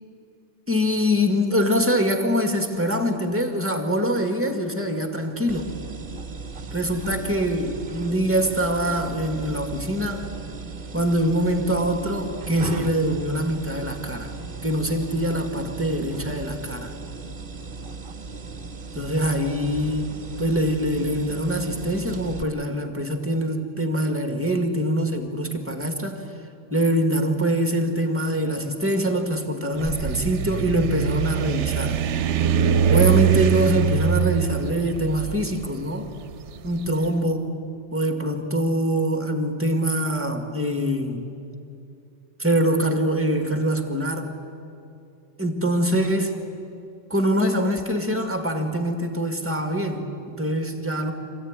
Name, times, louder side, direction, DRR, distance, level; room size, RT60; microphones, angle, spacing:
voice 1, 0.7-5.7 6.7-10.3 10.9-14.4 14.6-16.9 18.9-26.2 26.7-32.0 32.9-36.1 36.6-41.2 42.4-44.4 45.4-46.4 47.1-51.1, equal, 10° right, 5 dB, 1.9 m, -24 dB
sound 1, 5.5-22.4, right 4 dB, 50° right, 1.0 m, -36 dB
sound 2, 29.7-36.9, right 8 dB, 75° right, 1.0 m, -23 dB
26.0 x 15.0 x 9.7 m, 2.6 s
omnidirectional pair, 1.2 m